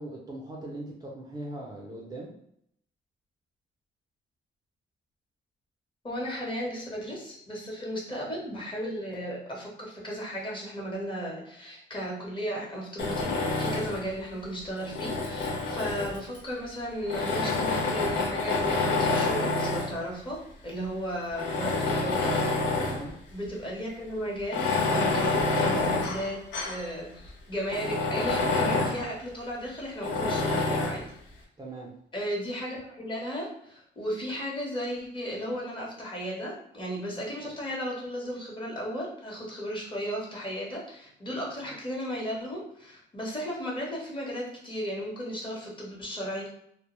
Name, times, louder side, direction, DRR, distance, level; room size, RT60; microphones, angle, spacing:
voice 1, 0.0-2.3 22.8-23.1 31.6-31.9, right 1 dB, 20° right, -3 dB, 0.5 m, -40 dB
voice 2, 6.0-20.4 20.6-22.4 23.3-31.1 32.1-46.5, equal, 25° left, -3 dB, 0.9 m, -35 dB
Tools, 13.0-14.1 14.8-16.4 17.1-20.0 20.7-20.8 21.3-23.1 23.4-23.5 24.4-26.9 27.3-27.4 27.7-29.1 30.0-31.0, left 3 dB, 70° left, 0.6 m, -28 dB
2.1 x 2.1 x 3.0 m, 0.72 s
cardioid pair, 90°, 20 cm